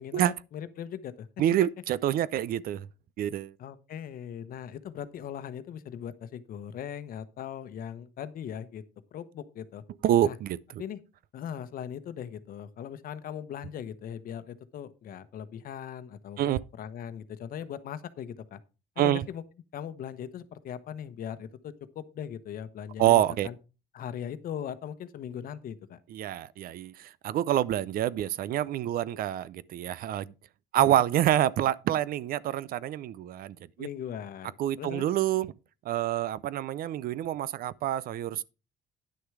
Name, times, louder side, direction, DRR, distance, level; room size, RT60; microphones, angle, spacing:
voice 1, 0.0-1.3 3.6-8.8 9.1-9.8 10.2-10.4 10.8-11.0 11.3-18.6 19.0-19.4 19.7-23.5 23.9-26.0 30.7-31.0 33.8-35.0, left 9 dB, 60° left, 1.0 m, -39 dB
voice 2, 1.4-2.9 3.2-3.5 10.0-10.6 16.4-16.6 19.0-19.2 23.0-23.5 26.1-30.3 30.7-33.9 34.6-35.5 35.8-38.4, right 12 dB, 60° right, 0.5 m, -27 dB
10.0 x 6.4 x 4.8 m
cardioid pair, 110°, 17 cm